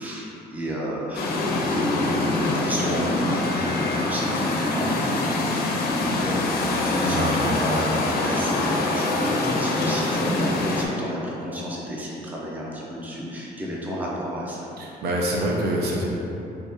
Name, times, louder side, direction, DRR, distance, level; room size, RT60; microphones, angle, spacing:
voice 1, 0.0-14.7, equal, 10° right, -5 dB, 0.5 m, -31 dB
sound 1, 1.1-10.9, left 2 dB, 65° left, 0.5 m, -24 dB
voice 2, 7.0-7.3 14.8-16.1, right 1 dB, 70° right, -3 dB, 0.7 m, -25 dB
3.5 x 3.3 x 2.8 m, 2.9 s
cardioid pair, 130°, 17 cm